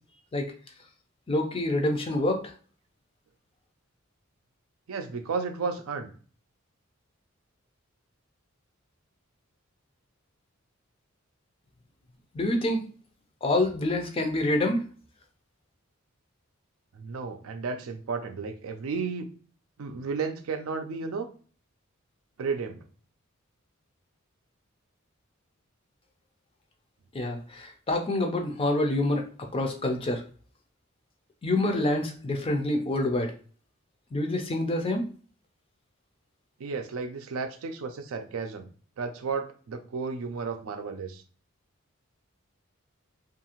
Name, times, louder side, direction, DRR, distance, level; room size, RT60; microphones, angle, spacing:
voice 1, 1.3-2.5 12.3-12.9 13.4-14.8 27.1-30.2 31.4-33.3 34.1-35.1, left 1 dB, 25° left, 4 dB, 0.4 m, -27 dB
voice 2, 4.9-6.1 16.9-19.3 19.8-21.3 22.4-22.8 36.6-38.7 39.0-41.2, right 5 dB, 80° right, 7 dB, 0.4 m, -33 dB
2.7 x 2.4 x 2.8 m, 0.42 s
head